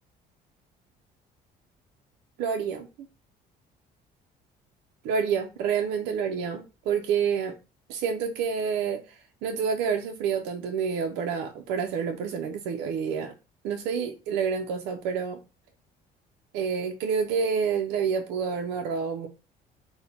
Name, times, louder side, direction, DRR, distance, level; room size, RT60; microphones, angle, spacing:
voice 1, 2.4-2.9 5.0-7.6 7.9-9.0 9.4-13.3 13.6-15.4 16.5-19.3, right 6 dB, 85° right, 0.5 m, -28 dB
4.0 x 2.1 x 4.2 m
cardioid pair, 110°, 17 cm